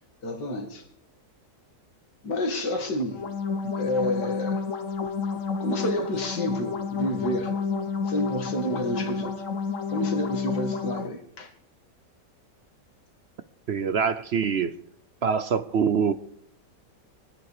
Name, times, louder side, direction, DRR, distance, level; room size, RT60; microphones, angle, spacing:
voice 1, 0.2-0.8 2.2-3.2 3.8-4.6 5.6-7.6 8.1-9.3 9.9-11.5, left 1 dB, 90° left, 2.7 m, -29 dB
sound 1, 3.1-11.1, left 5 dB, 50° left, 1.7 m, -30 dB
voice 2, 13.7-14.7 15.2-16.1, right 6 dB, 60° right, 0.7 m, -24 dB
24.0 x 10.0 x 4.9 m
omnidirectional pair, 1.8 m